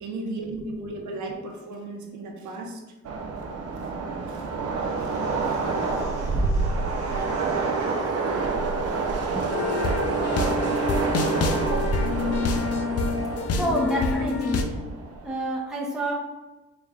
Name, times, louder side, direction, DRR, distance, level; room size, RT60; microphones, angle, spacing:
voice 1, 0.0-2.8 3.8-3.9 4.3-4.5 5.4-5.6 10.9-11.0 11.3-12.1 15.1-15.2, right 2 dB, 75° right, 2 dB, 0.9 m, -36 dB
Train, 3.1-15.3, right 4 dB, 50° right, 0.6 m, -28 dB
sound 1, 4.8-9.5, left 1 dB, 80° left, 1.5 m, -42 dB
voice 2, 9.3-9.9 13.5-14.7 15.2-16.1, right 1 dB, ahead, -4 dB, 0.7 m, -29 dB
sound 2, 9.5-14.6, left 3 dB, 55° left, 0.6 m, -26 dB
5.0 x 3.3 x 2.3 m, 1.1 s
cardioid pair, 90°, 30 cm